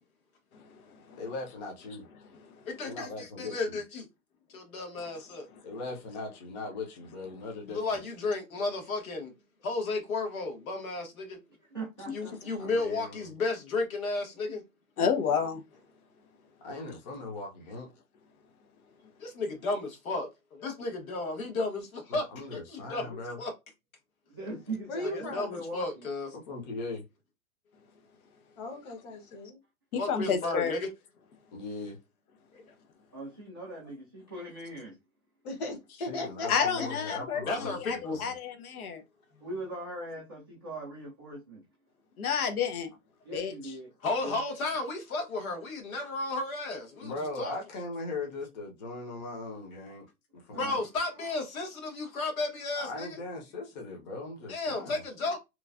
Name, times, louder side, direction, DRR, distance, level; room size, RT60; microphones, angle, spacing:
voice 1, 1.2-2.1 2.8-3.5 5.6-8.0 12.6-13.3 16.6-17.9 22.1-23.4 26.5-27.0 31.5-32.0 36.0-38.4 47.0-50.0 50.5-50.8 52.8-55.0, left 3 dB, 30° left, 0.7 m, -39 dB
voice 2, 2.7-4.0 4.5-5.5 7.7-9.3 9.6-11.4 12.1-14.6 19.2-22.2 22.5-23.5 25.1-26.3 30.0-30.9 32.5-32.6 37.4-38.3 44.0-47.5 50.5-53.2 54.5-55.4, left 3 dB, 70° left, 1.3 m, -33 dB
voice 3, 11.7-12.6 14.4-14.6 24.3-26.0 33.1-35.0 39.4-41.6 43.2-43.9 44.2-44.4 50.5-50.8, right 2 dB, 20° right, 0.3 m, -40 dB
voice 4, 15.0-15.6 29.9-30.8 36.5-39.0 42.2-42.9 43.3-43.5, left 7 dB, 85° left, 0.8 m, -30 dB
voice 5, 24.9-25.6 28.6-29.6 35.4-37.2 39.3-39.5, left 2 dB, 50° left, 1.1 m, -37 dB
3.0 x 2.2 x 2.4 m
hypercardioid pair, 160°, 43 cm